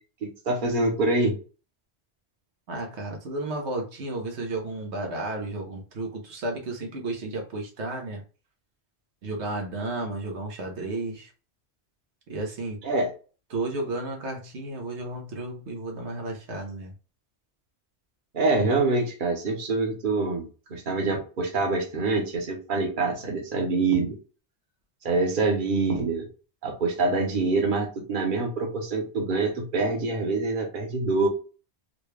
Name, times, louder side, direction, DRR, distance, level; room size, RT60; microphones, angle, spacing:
voice 1, 0.2-1.3 12.8-13.1 18.3-24.2 25.0-26.3 26.6-31.3, right 3 dB, 50° right, 1 dB, 1.1 m, -25 dB
voice 2, 2.7-8.2 9.2-11.3 12.3-12.8 13.5-16.9, right 2 dB, 90° right, 2 dB, 1.3 m, -33 dB
3.9 x 2.3 x 3.2 m, 0.35 s
omnidirectional pair, 1.1 m